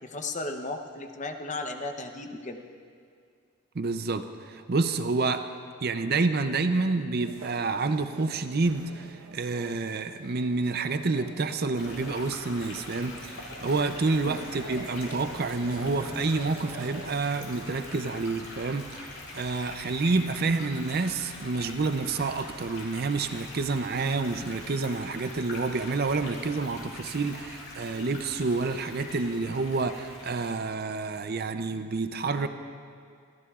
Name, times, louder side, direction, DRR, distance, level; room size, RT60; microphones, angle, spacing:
voice 1, 0.0-2.6 14.2-14.4, left 2 dB, 35° left, 5 dB, 0.8 m, -35 dB
voice 2, 3.7-5.5 5.8-32.5, right 3 dB, 45° right, 9 dB, 0.5 m, -28 dB
sound 1, 7.2-17.2, right 2 dB, 80° right, 1.1 m, -46 dB
sound 2, 11.8-30.5, left 2 dB, 80° left, 3.4 m, -43 dB
24.0 x 15.0 x 2.4 m, 2.3 s
head